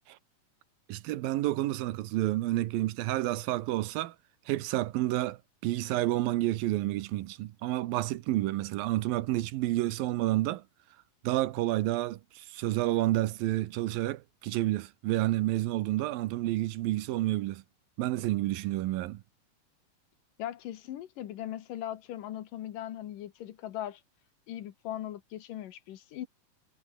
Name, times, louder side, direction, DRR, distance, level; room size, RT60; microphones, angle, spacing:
voice 1, 0.9-4.2 4.5-10.6 11.2-17.6 18.0-19.2, right 16 dB, 85° right, 2.7 m, -30 dB
voice 2, 20.4-24.0 24.5-26.3, left 12 dB, 75° left, 2.9 m, -39 dB
omnidirectional pair, 4.0 m